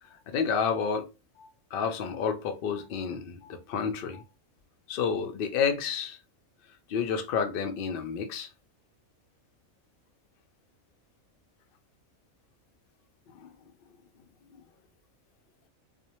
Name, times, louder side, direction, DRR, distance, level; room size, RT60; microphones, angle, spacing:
voice 1, 0.0-1.1 1.4-4.2 4.9-6.2 6.9-8.5 13.3-13.5, left 6 dB, 65° left, 0.5 m, -30 dB
2.5 x 2.0 x 2.8 m
omnidirectional pair, 1.4 m